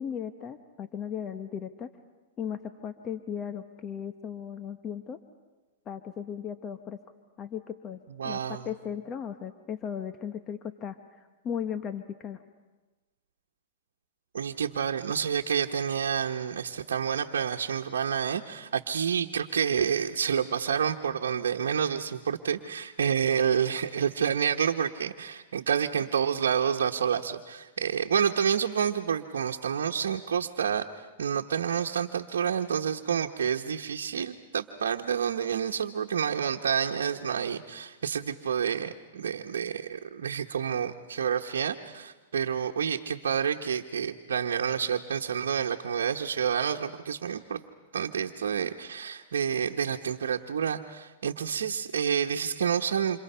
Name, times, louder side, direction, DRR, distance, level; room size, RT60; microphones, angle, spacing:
voice 1, 0.0-1.9 2.4-5.2 5.9-7.0 7.4-12.4, left 8 dB, 30° left, 8 dB, 1.1 m, -37 dB
voice 2, 8.2-8.7 14.3-30.8 31.2-47.6 47.9-53.2, right 7 dB, 85° right, 1 dB, 1.1 m, -29 dB
29.5 x 27.5 x 5.7 m, 1.2 s
hypercardioid pair, 120°, 0 cm